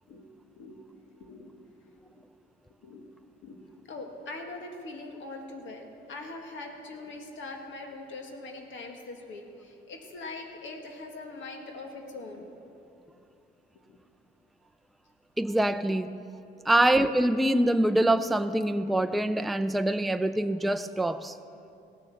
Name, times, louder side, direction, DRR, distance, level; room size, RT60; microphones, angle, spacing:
voice 1, 1.2-1.6 2.0-2.2 2.8-3.0 3.4-12.5 13.0-13.2 13.9-14.0, left 2 dB, 70° left, 3 dB, 1.7 m, -42 dB
voice 2, 15.4-16.2 16.7-21.4, right 1 dB, ahead, 10 dB, 0.4 m, -25 dB
17.0 x 6.6 x 7.1 m, 2.6 s
cardioid pair, 90°, 20 cm